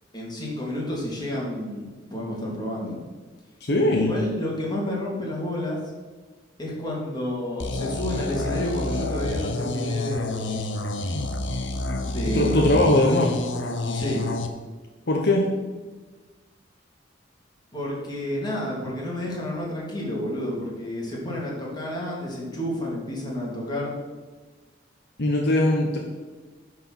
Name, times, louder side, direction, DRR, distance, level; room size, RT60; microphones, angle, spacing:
voice 1, 0.1-3.0 4.0-5.8 6.6-10.6 12.1-12.9 13.9-14.3 17.7-23.9, left 1 dB, 25° left, -4 dB, 2.8 m, -30 dB
voice 2, 3.6-4.1 12.3-13.3 15.1-15.4 25.2-26.0, left 1 dB, 60° left, 0 dB, 1.1 m, -20 dB
sound 1, 7.6-14.5, left 2 dB, 85° left, 0.9 m, -29 dB
11.0 x 4.8 x 6.0 m, 1.3 s
head